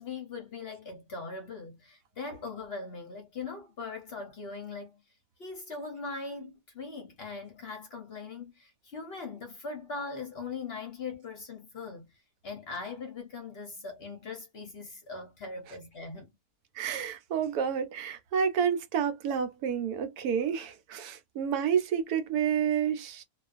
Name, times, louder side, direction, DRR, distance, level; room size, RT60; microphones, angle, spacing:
voice 1, 0.0-5.0 5.4-16.3, left 4 dB, 50° left, 0.8 m, -40 dB
voice 2, 16.8-23.2, right 7 dB, 80° right, 1.1 m, -29 dB
2.4 x 2.4 x 2.4 m
omnidirectional pair, 1.6 m